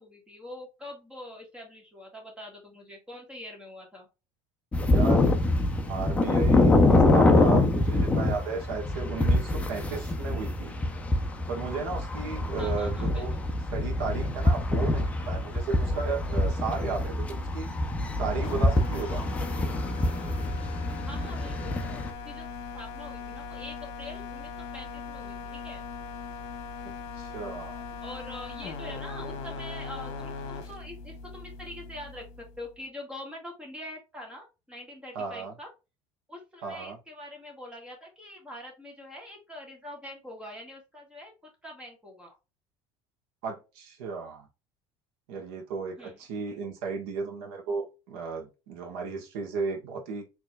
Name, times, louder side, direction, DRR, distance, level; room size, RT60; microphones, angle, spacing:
voice 1, 0.0-4.1 12.6-13.4 21.0-22.5 22.7-25.9 28.0-35.7 36.3-42.3 46.0-46.2, left 1 dB, 10° right, 1.6 m, -44 dB
sound 1, 4.7-22.1, left 2 dB, 10° left, 0.5 m, -25 dB
voice 2, 4.8-5.2 5.9-10.7 11.5-13.3 13.7-17.7 18.2-19.3 27.1-27.8 28.9-29.4 35.1-35.5 36.6-37.0 43.4-44.5 45.3-50.2, right 4 dB, 90° right, 1.4 m, -34 dB
sound 2, 15.5-32.7, left 5 dB, 55° left, 1.1 m, -40 dB
4.5 x 3.0 x 2.3 m
cardioid pair, 150°, 12 cm